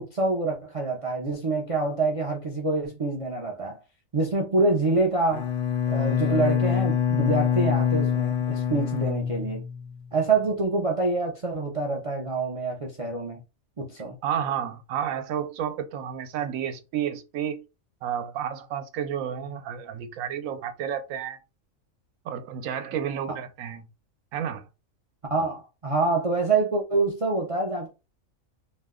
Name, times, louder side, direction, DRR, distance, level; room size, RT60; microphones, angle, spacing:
voice 1, 0.0-3.8 4.1-5.5 5.9-9.6 10.1-13.4 13.8-14.2 25.3-27.9, right 3 dB, 65° right, 0.3 m, -26 dB
Bowed string instrument, 5.3-10.1, left 8 dB, 70° left, 0.5 m, -25 dB
voice 2, 14.2-17.6 18.0-21.4 22.2-23.9 24.3-24.7, right 9 dB, 80° right, 1.0 m, -31 dB
2.6 x 2.1 x 3.5 m
omnidirectional pair, 1.4 m